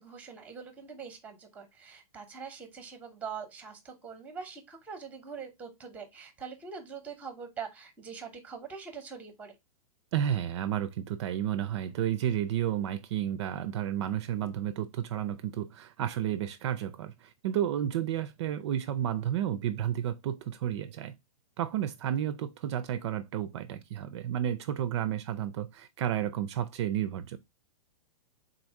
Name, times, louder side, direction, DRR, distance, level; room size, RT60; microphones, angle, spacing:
voice 1, 0.0-9.5, right 6 dB, 10° right, 0.7 m, -43 dB
voice 2, 10.1-21.1 21.6-27.4, right 10 dB, 50° right, 0.4 m, -31 dB
3.8 x 2.6 x 4.5 m
hypercardioid pair, 160°, 19 cm